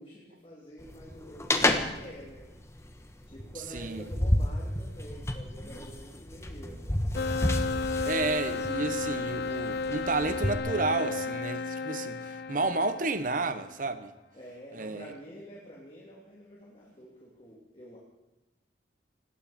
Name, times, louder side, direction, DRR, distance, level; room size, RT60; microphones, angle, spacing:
voice 1, 0.0-2.5 3.2-6.9 14.3-18.0, equal, 30° left, 2.9 m, -48 dB
sound 1, 0.8-10.6, left 1 dB, 15° left, 1.2 m, -31 dB
voice 2, 3.7-4.0 8.1-14.1 14.7-15.1, right 3 dB, 50° right, 1.1 m, -31 dB
sound 2, 7.2-13.6, left 4 dB, 60° left, 0.4 m, -33 dB
19.5 x 17.0 x 4.3 m
head